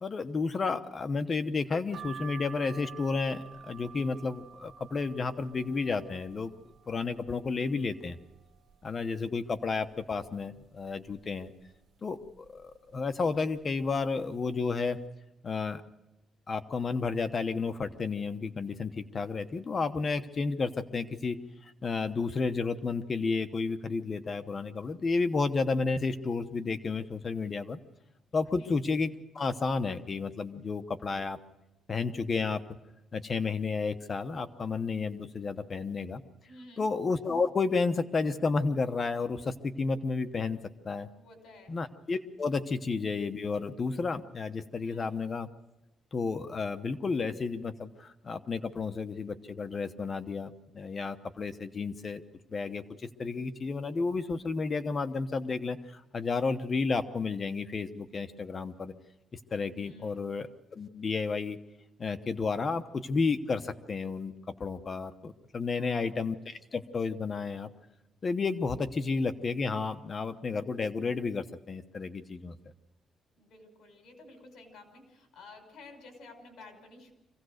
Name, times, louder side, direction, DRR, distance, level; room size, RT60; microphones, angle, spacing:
voice 1, 0.0-6.5 6.9-8.2 8.8-11.5 12.0-15.0 15.4-15.8 16.5-21.4 21.6-27.8 28.3-31.4 31.9-32.6 33.1-36.2 36.8-40.6 40.8-41.1 41.7-45.5 46.1-52.2 52.5-52.8 53.2-58.9 59.5-61.6 62.0-64.3 64.6-67.7 68.2-72.6, left 4 dB, 30° left, 9 dB, 1.0 m, -32 dB
sound 1, 1.9-7.6 8.1-8.8 9.2-9.3 9.5-10.6 11.1-11.5 12.2-12.6 13.4-13.6 13.9-14.1, right 7 dB, 60° right, 2.3 m, -49 dB
voice 2, 36.5-36.9 41.1-41.7 44.8-45.1 59.7-60.2 65.7-66.2 73.4-77.1, left 2 dB, 70° left, 5 dB, 5.7 m, -52 dB
25.5 x 17.0 x 6.5 m, 0.99 s
cardioid pair, 145°, 0 cm